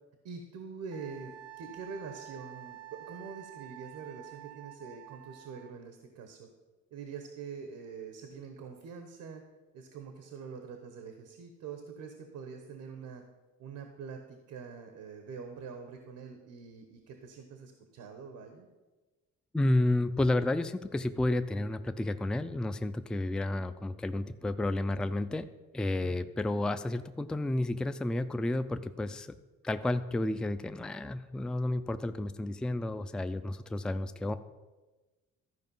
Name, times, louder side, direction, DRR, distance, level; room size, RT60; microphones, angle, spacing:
voice 1, 0.2-6.5 6.9-9.4 9.7-13.2 13.6-18.7 26.0-26.3, right 5 dB, 80° right, 6 dB, 1.0 m, -45 dB
Wind instrument woodwind instrument, 0.9-5.8, right 14 dB, 60° right, 0.5 m, -49 dB
voice 2, 19.5-25.5 25.7-29.3 29.6-34.4, left 1 dB, 5° left, 11 dB, 0.4 m, -31 dB
13.0 x 4.9 x 5.4 m, 1.2 s
cardioid pair, 90°, 30 cm